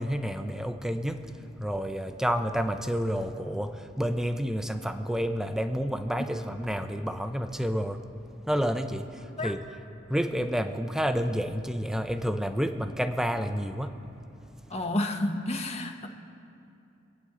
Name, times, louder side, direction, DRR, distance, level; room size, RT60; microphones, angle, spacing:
voice 1, 0.0-8.1 8.4-9.6 10.1-13.9, equal, 5° right, 7 dB, 0.6 m, -30 dB
voice 2, 14.7-16.1, left 1 dB, 35° left, 4 dB, 1.1 m, -30 dB
26.5 x 9.2 x 3.8 m, 2.7 s
head